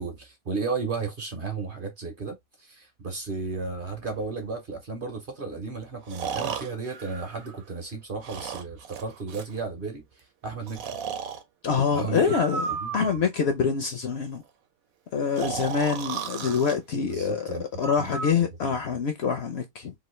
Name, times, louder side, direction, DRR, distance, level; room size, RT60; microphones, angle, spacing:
voice 1, 0.0-10.9 11.9-12.2 12.8-13.0 17.0-17.6 18.0-18.1, right 4 dB, 50° right, 0.8 m, -34 dB
Breathing, 4.2-4.3 6.1-7.8 8.2-9.5 10.7-11.4 12.2-13.4 15.4-16.7 17.8-18.3, right 6 dB, 80° right, 1.1 m, -34 dB
voice 2, 11.6-14.4 15.1-19.9, left 6 dB, 65° left, 0.7 m, -26 dB
3.0 x 2.4 x 3.1 m
omnidirectional pair, 1.5 m